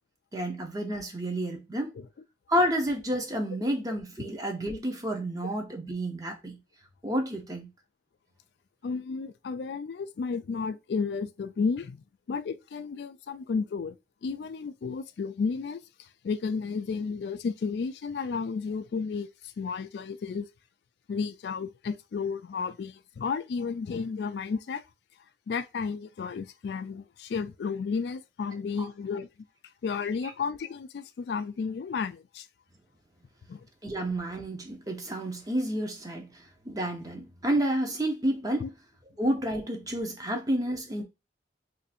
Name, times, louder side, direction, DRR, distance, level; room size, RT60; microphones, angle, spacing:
voice 1, 0.3-1.9 2.5-6.6 7.0-7.7 33.8-38.7 39.2-41.0, right 1 dB, 20° right, 0.7 m, -30 dB
voice 2, 8.8-14.0 14.2-20.5 21.1-24.8 25.5-29.3 29.8-32.5 33.5-33.7 38.6-38.7, left 5 dB, 70° left, 0.3 m, -32 dB
2.6 x 2.6 x 4.1 m
head